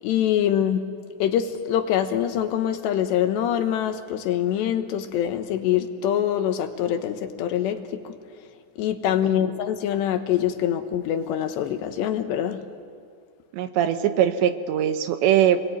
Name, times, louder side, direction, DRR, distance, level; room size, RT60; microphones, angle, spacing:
voice 1, 0.0-0.9 1.2-8.1 8.8-12.6, left 10 dB, 80° left, 7 dB, 3.4 m, -24 dB
voice 2, 13.5-15.6, right 10 dB, 90° right, 8 dB, 3.5 m, -21 dB
29.0 x 21.5 x 9.6 m, 2.2 s
omnidirectional pair, 4.9 m